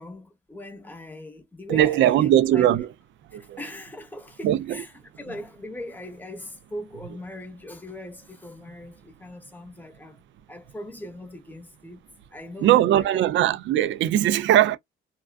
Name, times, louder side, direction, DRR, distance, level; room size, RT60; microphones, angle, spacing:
voice 1, 0.0-2.7 3.3-12.0 12.3-13.3, left 1 dB, 10° left, 0.8 m, -40 dB
voice 2, 1.7-2.9 3.3-3.6 4.4-4.8 12.6-14.8, right 12 dB, 70° right, 0.4 m, -20 dB
2.4 x 2.3 x 2.3 m
cardioid pair, 90°, 20 cm